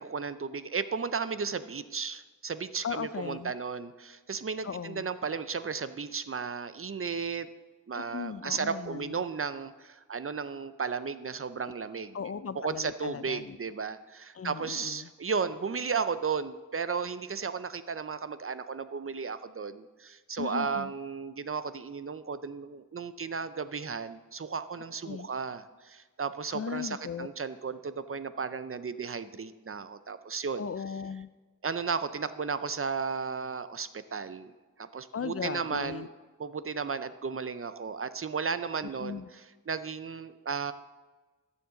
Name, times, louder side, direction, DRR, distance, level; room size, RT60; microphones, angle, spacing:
voice 1, 0.0-7.5 7.9-12.2 12.6-30.7 31.6-34.5 34.8-36.1 36.4-40.7, right 5 dB, 45° right, 13 dB, 0.5 m, -34 dB
voice 2, 2.8-3.5 4.6-5.1 7.9-9.2 12.1-13.6 14.3-15.1 20.4-20.9 25.0-25.3 26.5-27.3 30.6-31.3 35.1-36.1 38.8-39.3, left 6 dB, 50° left, 15 dB, 0.4 m, -37 dB
13.5 x 7.2 x 3.9 m, 1.3 s
wide cardioid pair, 50°, 32 cm